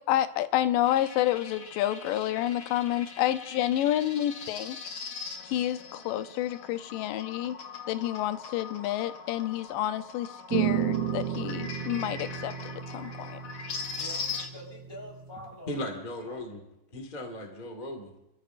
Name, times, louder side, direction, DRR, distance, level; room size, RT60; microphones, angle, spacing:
voice 1, 0.1-4.8 5.4-7.6 7.9-13.4, left 13 dB, 90° left, 11 dB, 2.3 m, -29 dB
sound 1, 0.8-14.5, left 5 dB, 50° left, 1.7 m, -41 dB
sound 2, 10.5-15.5, right 9 dB, 70° right, 2.1 m, -33 dB
voice 2, 13.6-15.9 16.2-16.4, equal, 5° left, -2 dB, 3.8 m, -46 dB
voice 3, 15.7-16.7 16.9-18.1, left 1 dB, 25° left, 2 dB, 1.0 m, -37 dB
29.5 x 14.0 x 2.5 m, 0.91 s
omnidirectional pair, 3.7 m